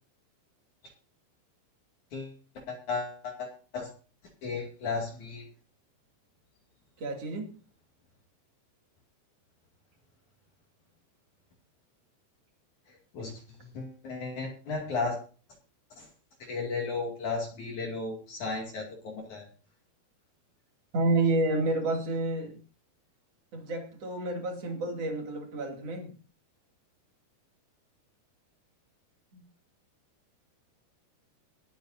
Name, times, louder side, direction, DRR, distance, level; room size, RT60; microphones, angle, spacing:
voice 1, 2.1-3.9 4.4-5.5 12.9-15.2 15.9-16.1 16.4-19.5, left 4 dB, 50° left, 3.2 m, -35 dB
voice 2, 7.0-7.6 20.9-22.6 23.5-26.1 29.3-29.4, right 2 dB, 40° right, 3.0 m, -29 dB
21.5 x 9.0 x 2.6 m
omnidirectional pair, 5.0 m